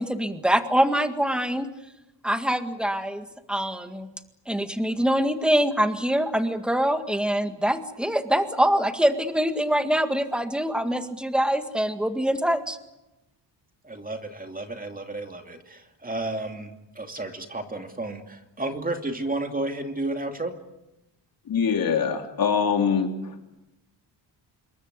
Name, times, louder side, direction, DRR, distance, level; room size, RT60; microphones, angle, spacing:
voice 1, 0.0-1.7 2.2-4.1 4.5-12.8, equal, ahead, 8 dB, 1.9 m, -24 dB
voice 2, 13.8-20.5, right 2 dB, 20° right, 5 dB, 2.6 m, -32 dB
voice 3, 21.5-23.4, left 6 dB, 50° left, 3 dB, 3.5 m, -24 dB
27.5 x 22.5 x 8.2 m, 0.93 s
cardioid pair, 140°, 43 cm